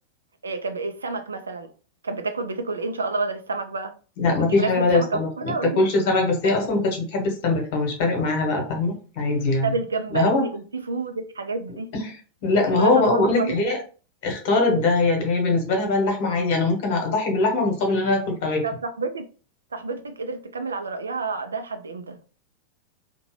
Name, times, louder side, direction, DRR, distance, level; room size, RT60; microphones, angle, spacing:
voice 1, 0.4-1.7 2.0-3.9 4.3-5.8 9.6-11.9 12.6-13.6 18.6-19.2 19.7-22.2, right 4 dB, 75° right, 0.4 m, -29 dB
voice 2, 4.2-9.7 10.1-10.4 12.0-12.2 12.4-13.8 14.2-18.6, left 3 dB, 50° left, 1.0 m, -22 dB
2.8 x 2.1 x 3.1 m
figure-of-eight pair, 90°, 0 cm